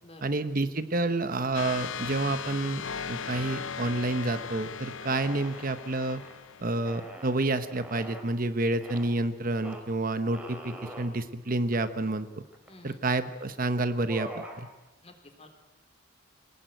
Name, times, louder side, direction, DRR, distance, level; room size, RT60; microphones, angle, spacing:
voice 1, 0.2-2.8 3.1-6.2 6.6-12.3 12.8-14.7, right 2 dB, 40° right, 10 dB, 0.9 m, -29 dB
sound 1, 1.5-7.1, left 6 dB, 60° left, 0.8 m, -38 dB
sound 2, 5.1-6.4 6.8-8.3 8.8-9.1 9.6-9.8 10.3-11.1 11.7-11.8 12.0-12.8 13.4-13.6 13.9-14.6, equal, 5° right, 3.5 m, -44 dB
voice 2, 12.7-13.0 15.0-15.5, left 1 dB, 30° left, 5 dB, 3.7 m, -51 dB
26.0 x 19.5 x 9.1 m, 1.1 s
head